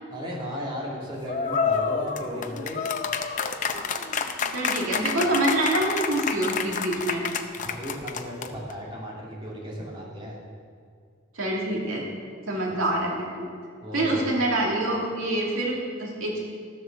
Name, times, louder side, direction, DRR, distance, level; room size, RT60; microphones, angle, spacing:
voice 1, 0.1-2.8 7.6-10.4 12.7-12.8 13.8-14.3, equal, 25° right, -4 dB, 2.2 m, -35 dB
sound 1, 1.3-8.7, left 5 dB, 35° left, 0.6 m, -29 dB
voice 2, 4.5-7.2 11.3-12.1 12.5-13.5 13.9-16.4, right 1 dB, 85° right, -3 dB, 2.5 m, -26 dB
14.0 x 7.9 x 6.5 m, 2.2 s
head